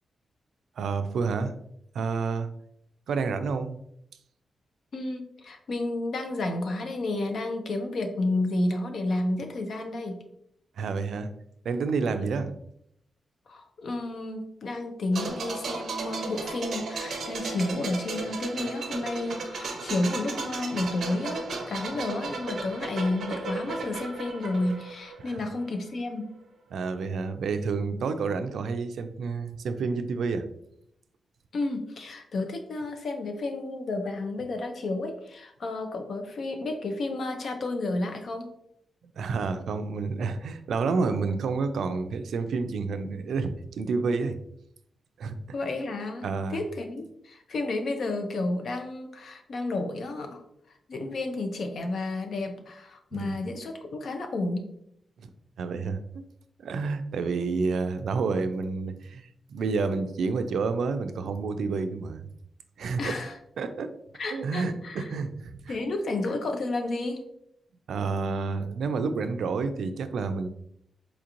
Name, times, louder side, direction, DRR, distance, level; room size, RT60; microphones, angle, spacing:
voice 1, 0.8-1.5 1.9-2.5 3.1-3.8 10.8-11.3 11.6-12.5 25.3-25.4 26.7-30.5 39.2-44.4 45.2-45.4 46.2-46.6 53.1-53.4 55.2-55.3 55.6-56.2 56.6-62.2 62.8-63.2 63.6-63.9 64.3-65.8 67.9-70.5, right 4 dB, 85° right, 9 dB, 0.3 m, -29 dB
voice 2, 4.9-10.2 13.5-26.3 31.5-38.5 45.5-50.4 50.9-54.7 63.0-63.3 64.2-65.1 65.7-67.2, left 2 dB, 55° left, 5 dB, 0.5 m, -31 dB
sound 1, 15.1-25.8 26.0-26.2, right 3 dB, 65° right, 0.7 m, -35 dB
4.3 x 2.9 x 2.5 m, 0.74 s
wide cardioid pair, 155°, 0 cm